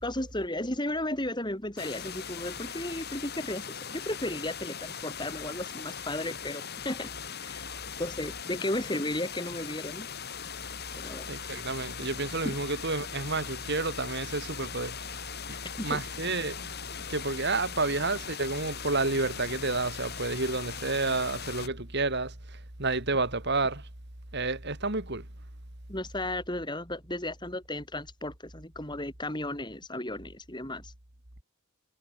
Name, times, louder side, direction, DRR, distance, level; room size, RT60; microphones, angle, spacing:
voice 1, 0.0-7.1 7.4-7.6 8.0-10.1 11.0-11.3 12.4-12.5 15.9-16.0 25.9-30.9, left 1 dB, 20° left, 4.9 m, -34 dB
sound 1, 1.8-21.7, left 7 dB, 45° left, 5.3 m, -40 dB
voice 2, 11.3-15.2 15.5-23.9 24.3-25.3, right 3 dB, 50° right, 3.0 m, -30 dB
head